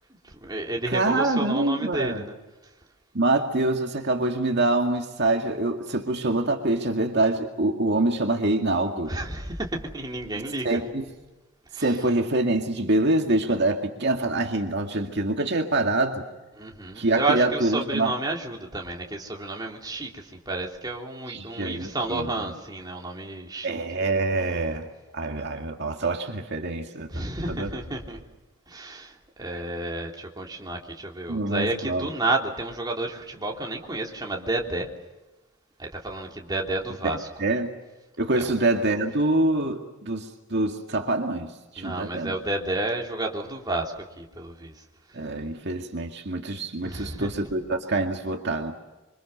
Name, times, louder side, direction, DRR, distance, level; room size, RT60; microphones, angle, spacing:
voice 1, 0.2-2.3 9.1-10.8 11.7-11.9 16.6-23.8 27.1-28.2 28.7-34.9 35.8-37.3 38.3-38.5 41.8-44.7 46.8-47.3, right 2 dB, 20° right, 0 dB, 3.3 m, -31 dB
voice 2, 0.9-2.2 3.1-9.1 10.6-11.0 11.7-16.2 17.0-18.1 21.3-22.3 23.6-24.9 25.1-27.7 29.5-29.6 31.3-32.1 37.4-37.7 38.2-42.3 45.1-48.7, right 2 dB, 55° right, 3 dB, 2.2 m, -25 dB
27.0 x 25.0 x 6.8 m, 1.1 s
head